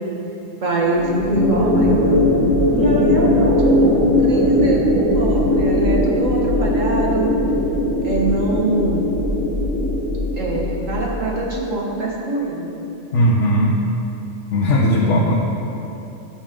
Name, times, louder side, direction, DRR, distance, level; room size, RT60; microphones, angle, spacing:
voice 1, 0.6-2.2 2.7-7.3 8.0-9.0 10.4-12.7, right 1 dB, 75° right, -3 dB, 2.1 m, -23 dB
sound 1, 0.9-11.4, left 1 dB, 10° left, 1.3 m, -19 dB
voice 2, 13.1-13.8 14.5-15.3, equal, 65° left, -5 dB, 1.4 m, -17 dB
17.0 x 7.2 x 3.8 m, 2.9 s
omnidirectional pair, 1.4 m